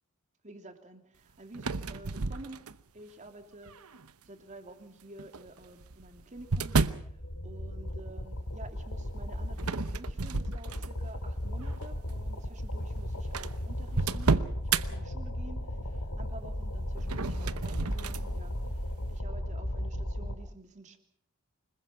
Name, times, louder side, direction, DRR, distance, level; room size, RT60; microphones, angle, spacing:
voice 1, 0.4-2.6 2.9-3.8 4.2-21.0, right 2 dB, 35° right, 6 dB, 2.9 m, -50 dB
sound 1, 1.5-3.0 3.7-4.1 5.2-7.1 9.6-11.1 11.6-11.9 12.6-12.7 12.9-13.0 13.3-14.8 17.0-18.3, right 4 dB, 80° right, 0.9 m, -31 dB
sound 2, 6.6-20.4, left 1 dB, 90° left, 3.0 m, -36 dB
25.5 x 21.5 x 5.7 m, 0.67 s
head